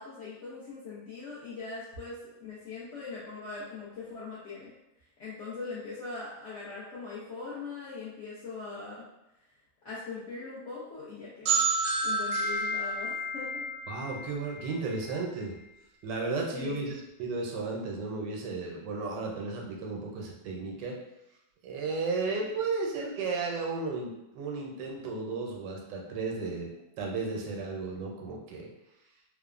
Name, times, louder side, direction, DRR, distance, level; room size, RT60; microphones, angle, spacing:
voice 1, 0.0-4.7 5.2-9.1 9.8-11.7 12.0-13.6 16.5-16.9, left 4 dB, 60° left, -10 dB, 0.8 m, -41 dB
sound 1, 11.5-15.1, right 2 dB, 70° right, 0.9 m, -30 dB
voice 2, 13.9-15.5 16.0-21.0 21.6-26.7 27.0-28.7, right 3 dB, 85° right, 0 dB, 1.2 m, -34 dB
3.1 x 2.0 x 2.3 m, 0.90 s
omnidirectional pair, 1.8 m